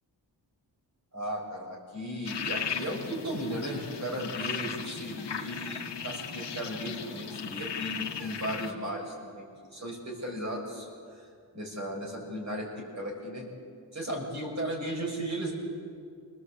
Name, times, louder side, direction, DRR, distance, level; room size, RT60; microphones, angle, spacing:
voice 1, 1.1-9.4 9.7-11.3 11.5-13.5 13.9-15.5, equal, 40° right, 0 dB, 6.8 m, -36 dB
sound 1, 2.2-8.7, left 7 dB, 85° left, 1.8 m, -37 dB
27.5 x 19.0 x 8.3 m, 2.2 s
wide cardioid pair, 140°, 41 cm